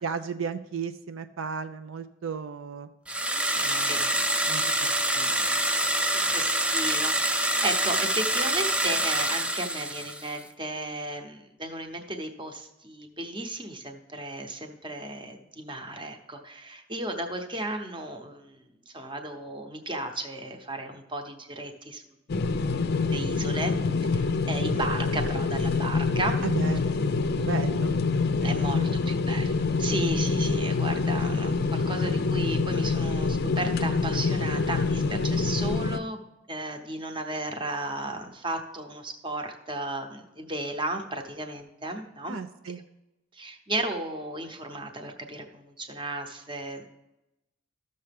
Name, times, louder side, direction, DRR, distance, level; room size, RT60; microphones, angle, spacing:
voice 1, 0.0-2.9 3.5-4.6 5.1-5.6 6.2-6.3 24.7-24.9 26.4-27.1 27.4-27.9 28.4-29.1 42.3-42.8, right 5 dB, 75° right, 9 dB, 0.5 m, -35 dB
sound 1, 3.1-10.4, right 1 dB, 5° right, 0.4 m, -26 dB
voice 2, 6.1-22.0 22.9-23.7 24.0-26.4 28.4-36.2 36.5-42.4 43.3-46.8, right 2 dB, 25° right, 4 dB, 0.9 m, -34 dB
sound 2, 22.3-36.0, left 4 dB, 55° left, 0.5 m, -26 dB
13.5 x 6.6 x 3.5 m, 0.95 s
head